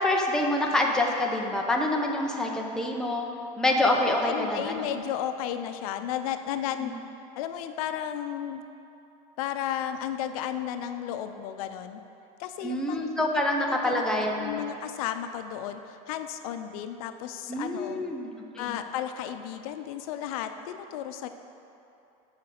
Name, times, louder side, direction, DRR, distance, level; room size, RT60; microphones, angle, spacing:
voice 1, 0.0-3.3 3.6-4.9 6.8-6.9 12.6-14.6 17.5-18.7, left 1 dB, 5° left, -1 dB, 0.7 m, -26 dB
voice 2, 4.0-6.9 7.4-8.6 9.4-12.0 12.4-13.1 13.3-14.0 14.4-18.0 18.5-21.3, left 10 dB, 75° left, 9 dB, 0.6 m, -33 dB
8.1 x 5.2 x 6.5 m, 2.8 s
supercardioid pair, 140°, 18 cm